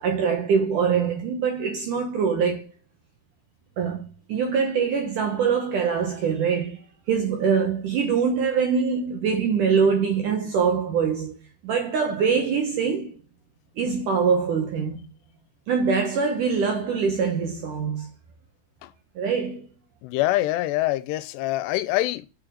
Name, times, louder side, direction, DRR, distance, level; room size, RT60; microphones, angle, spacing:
voice 1, 0.0-2.7 3.8-11.4 11.6-13.2 13.8-15.0 15.7-18.1 19.2-19.7, right 6 dB, 70° right, 2.0 m, -24 dB
voice 2, 20.0-22.3, left 16 dB, 85° left, 2.8 m, -25 dB
6.4 x 5.0 x 6.2 m
omnidirectional pair, 4.9 m